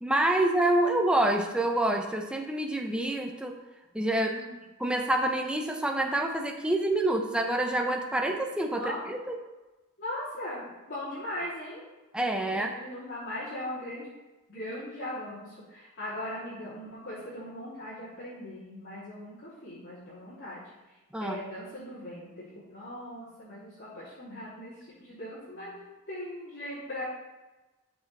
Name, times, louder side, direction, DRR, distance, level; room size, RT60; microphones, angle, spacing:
voice 1, 0.0-3.6 3.9-4.3 4.8-9.4 12.1-12.7 21.1-21.4, right 1 dB, 5° right, 3 dB, 0.7 m, -27 dB
voice 2, 4.2-4.5 8.7-9.0 10.0-11.8 12.5-14.1 14.5-24.7 25.0-27.0, left 1 dB, 50° left, -10 dB, 3.1 m, -39 dB
12.5 x 6.1 x 3.4 m, 1.1 s
head